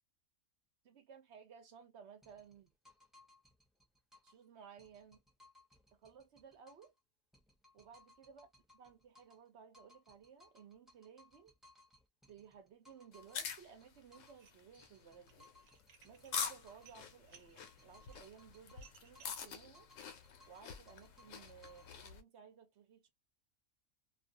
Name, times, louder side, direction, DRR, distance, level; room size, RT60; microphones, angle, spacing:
voice 1, 0.8-2.7 4.2-5.2 5.9-6.9 7.7-8.5 8.7-11.5 12.3-15.5 16.0-19.9 20.5-23.1, right 7 dB, 60° right, 0.9 m, -58 dB
sound 1, 2.2-4.4 4.8-7.0 7.3-9.5 9.7-14.4 14.8-17.0 17.3-19.5 19.7-22.1, left 2 dB, ahead, 0.6 m, -66 dB
sound 2, 13.1-22.2, left 6 dB, 75° left, 0.9 m, -46 dB
Dishes pots and pans, 14.3-14.9 15.2-19.5, right 7 dB, 90° right, 1.1 m, -64 dB
2.4 x 2.4 x 2.7 m
omnidirectional pair, 1.4 m